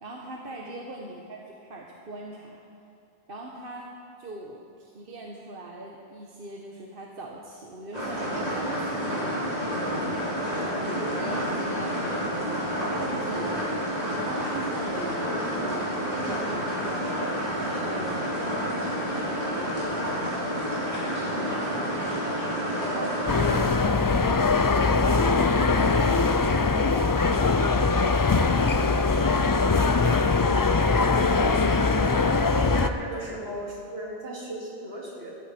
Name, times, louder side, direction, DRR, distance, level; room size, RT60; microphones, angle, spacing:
voice 1, 0.0-2.6 3.3-3.9 4.2-9.7 10.0-12.0 12.4-13.7 14.1-15.2 15.6-19.8 21.3-24.0 26.5-28.0 28.6-31.2 32.1-32.3, right 2 dB, 60° right, -1 dB, 1.3 m, -41 dB
sound 1, 7.9-23.7, equal, 45° right, 4.2 m, -29 dB
sound 2, 23.3-32.9, left 4 dB, 35° left, 0.3 m, -22 dB
voice 2, 32.5-35.3, right 1 dB, 80° right, -4 dB, 3.0 m, -36 dB
15.5 x 13.5 x 4.4 m, 2.6 s
omnidirectional pair, 1.0 m